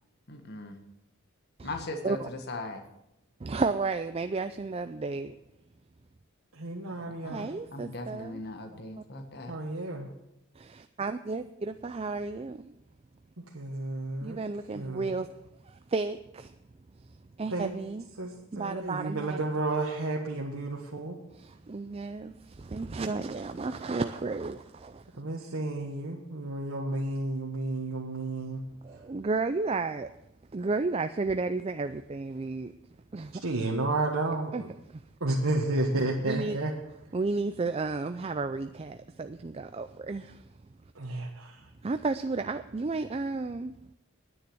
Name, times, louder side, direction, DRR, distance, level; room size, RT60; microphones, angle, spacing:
voice 1, 0.3-0.8 1.6-2.2 2.5-2.8 7.1-7.4 7.7-9.5, left 2 dB, 50° left, 1.4 m, -39 dB
voice 2, 3.4-5.4 7.3-8.4 9.0-9.1 10.6-12.7 14.2-15.4 15.6-16.5 17.4-18.1 18.5-19.4 21.3-25.0 28.8-30.1 30.5-32.7 33.1-33.4 34.5-34.6 34.9-35.1 36.2-36.6 37.1-40.5 41.8-43.7, right 3 dB, 30° right, 0.4 m, -33 dB
voice 3, 6.5-7.5 9.5-10.1 13.5-14.4 14.7-15.2 17.5-17.7 18.2-21.2 25.2-28.6 33.4-34.7 35.2-36.7 40.9-41.6, right 2 dB, 75° right, 1.5 m, -31 dB
10.0 x 9.6 x 7.8 m
head